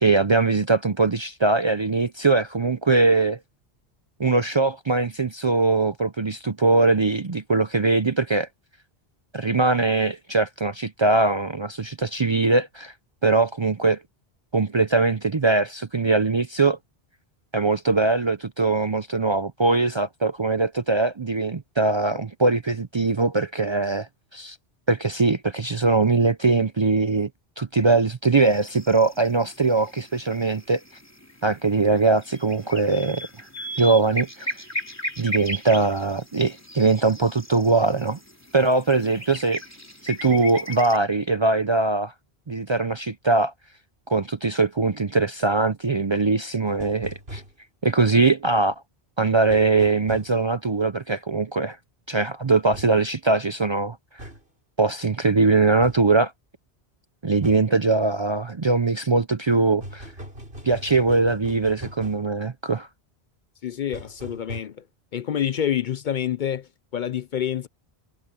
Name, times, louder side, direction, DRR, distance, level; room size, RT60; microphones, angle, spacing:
voice 1, 0.0-3.4 4.2-8.5 9.3-12.9 13.2-14.0 14.5-16.8 17.5-24.6 24.9-27.3 27.6-30.8 31.4-33.3 33.8-34.6 35.2-38.2 38.5-39.6 40.0-42.1 42.5-43.5 44.1-47.4 47.8-48.7 49.2-51.8 52.1-54.0 54.8-56.3 57.2-60.1 60.6-62.9, right 3 dB, 35° right, 0.5 m, -21 dB
sound 1, 28.4-41.0, equal, 15° left, 3.3 m, -37 dB
sound 2, 46.7-47.5 49.5-50.3 52.7-53.0 54.2-54.4 55.8-56.0 57.4-57.7 59.8-62.2 63.9-64.6, equal, 70° right, 6.1 m, -39 dB
voice 2, 63.6-64.8 65.1-67.7, left 9 dB, 60° left, 0.6 m, -27 dB
omnidirectional pair, 1.1 m